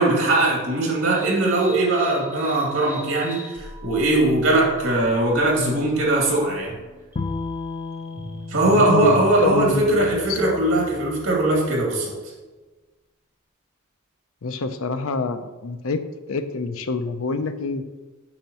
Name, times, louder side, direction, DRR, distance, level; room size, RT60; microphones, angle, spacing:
voice 1, 0.0-6.7 8.5-12.1, right 2 dB, 75° right, -2 dB, 2.5 m, -20 dB
sound 1, 1.1-11.7, equal, 10° right, 0.7 m, -40 dB
Bowed string instrument, 7.2-10.4, left 3 dB, 30° left, 0.4 m, -34 dB
voice 2, 8.7-10.6 14.4-16.0 16.3-17.8, left 4 dB, 80° left, 9 dB, 0.6 m, -26 dB
8.7 x 6.3 x 3.0 m, 1.2 s
head